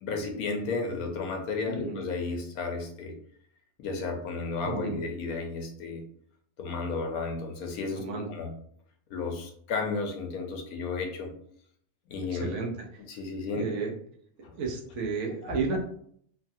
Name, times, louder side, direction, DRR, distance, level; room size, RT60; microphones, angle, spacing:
voice 1, 0.0-3.1 3.8-6.1 6.6-8.5 9.1-11.3 12.1-12.5 13.1-13.7 14.4-14.5 15.4-15.8, left 4 dB, 90° left, 3 dB, 1.1 m, -33 dB
voice 2, 1.7-2.0 4.6-5.0 8.0-8.3 12.3-12.9 13.5-13.9 14.6-15.8, right 4 dB, 60° right, 1 dB, 0.9 m, -32 dB
3.1 x 2.3 x 2.7 m, 0.63 s
omnidirectional pair, 1.5 m